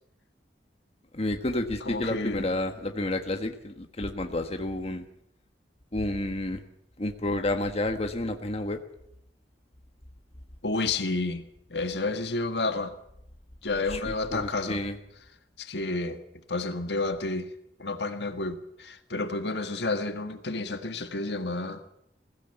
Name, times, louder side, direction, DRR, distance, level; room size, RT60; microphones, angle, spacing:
voice 1, 1.1-5.0 5.9-6.6 7.0-8.8 13.9-14.9, left 1 dB, 35° left, 1.5 m, -30 dB
voice 2, 1.8-2.5 10.6-11.4 11.7-12.9 13.6-14.8 15.6-16.2 16.5-17.5 17.8-21.8, left 3 dB, 70° left, 1.7 m, -30 dB
21.5 x 16.5 x 8.2 m
head